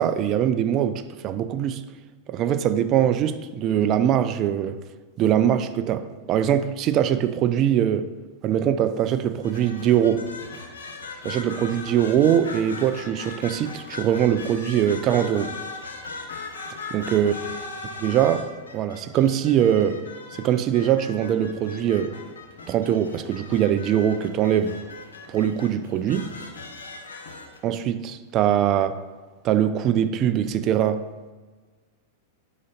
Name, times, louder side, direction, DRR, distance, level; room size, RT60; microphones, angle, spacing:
voice 1, 0.0-1.9 2.3-4.8 5.2-8.1 8.4-10.3 11.2-15.6 16.9-17.3 18.0-20.0 20.4-22.2 22.7-24.8 25.3-26.3 27.6-29.0 29.4-31.1, right 10 dB, 40° right, 0.4 m, -22 dB
sound 1, 9.4-27.6, left 3 dB, 80° left, 0.9 m, -39 dB
5.1 x 4.0 x 5.7 m
hypercardioid pair, 105°, 0 cm